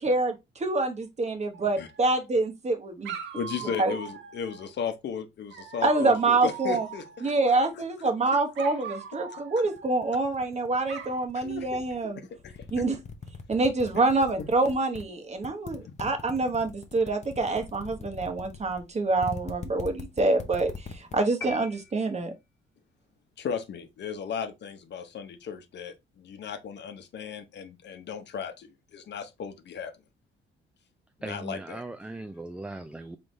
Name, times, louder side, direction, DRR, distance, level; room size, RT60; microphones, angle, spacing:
voice 1, 0.0-3.1 3.8-4.0 5.8-6.9 7.2-12.2 12.7-13.0 13.5-22.3, right 3 dB, 35° right, 1.1 m, -26 dB
Dog, 1.5-2.4 3.0-4.7 5.5-7.6 8.5-10.4 10.9-11.3, right 7 dB, 70° right, 0.9 m, -42 dB
voice 2, 3.3-7.3 11.3-11.8 12.4-12.5 15.8-15.9 23.4-29.9 31.2-31.8, left 7 dB, 60° left, 0.9 m, -36 dB
sound 1, 9.8-12.0 12.4-15.0 15.4-21.2, left 5 dB, 35° left, 0.8 m, -41 dB
sound 2, 21.4-22.6, left 4 dB, 15° left, 1.5 m, -42 dB
voice 3, 31.2-33.2, right 2 dB, 5° right, 0.4 m, -38 dB
3.9 x 3.3 x 3.1 m
cardioid pair, 90°, 20 cm